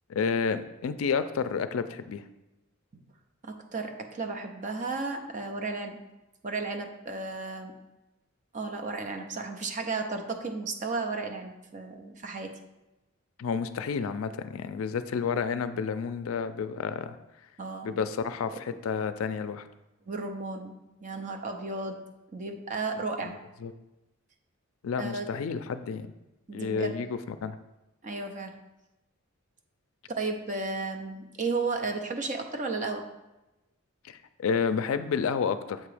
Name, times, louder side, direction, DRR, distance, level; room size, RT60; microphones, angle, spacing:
voice 1, 0.1-2.2 13.4-17.2 17.8-19.7 23.2-23.7 24.8-26.1 26.5-27.6 34.1-35.8, left 6 dB, 75° left, 11 dB, 0.4 m, -30 dB
voice 2, 3.4-6.0 6.4-7.7 8.5-12.5 17.6-17.9 20.1-22.0 22.3-23.3 25.0-25.3 26.5-27.0 28.0-28.5 30.1-33.0, right 3 dB, 35° right, 4 dB, 0.6 m, -34 dB
7.5 x 2.9 x 4.8 m, 0.98 s
head